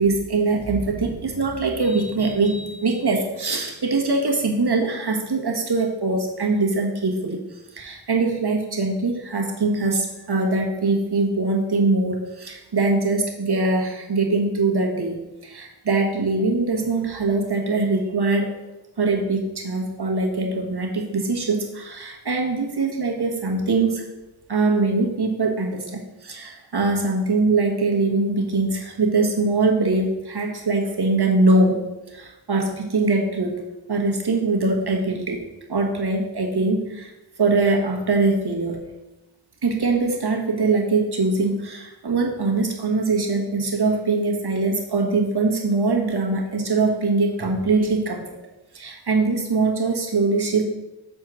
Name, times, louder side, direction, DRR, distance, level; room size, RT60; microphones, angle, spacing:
voice 1, 0.0-7.4 7.7-18.5 19.0-24.0 24.5-31.8 32.1-33.6 33.9-35.4 35.7-37.1 37.4-38.8 39.6-48.2 48.7-50.6, right 3 dB, 70° right, 0 dB, 1.5 m, -22 dB
7.5 x 4.3 x 6.1 m, 1.0 s
wide cardioid pair, 65°, 41 cm